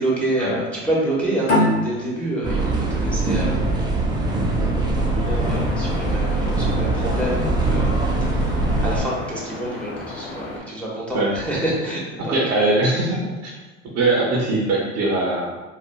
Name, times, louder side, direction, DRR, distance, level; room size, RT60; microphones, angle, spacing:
voice 1, 0.0-3.6 4.7-8.0 8.3-8.6 8.8-12.7, right 1 dB, 5° left, -6 dB, 1.1 m, -27 dB
sound 1, 1.5-4.7, left 1 dB, 85° left, 1.0 m, -24 dB
sound 2, 2.4-9.0, right 2 dB, 10° right, 0.6 m, -22 dB
sound 3, 5.2-10.6, left 2 dB, 60° left, 0.9 m, -35 dB
voice 2, 12.2-13.5 13.9-15.5, right 2 dB, 45° right, -3 dB, 0.9 m, -21 dB
3.9 x 2.4 x 2.3 m, 1.2 s
hypercardioid pair, 80°, 36 cm